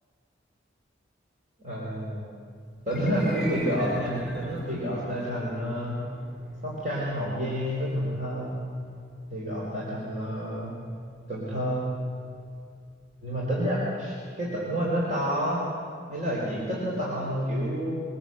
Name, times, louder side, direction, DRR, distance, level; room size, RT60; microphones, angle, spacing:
voice 1, 1.6-2.3 2.9-6.0 6.6-8.6 9.3-10.7 11.3-11.9 13.2-15.6 16.1-18.0, equal, 40° right, -6 dB, 4.8 m, -29 dB
sound 1, 2.8-13.1, right 1 dB, 5° right, 4.0 m, -44 dB
24.0 x 19.0 x 8.0 m, 2.4 s
head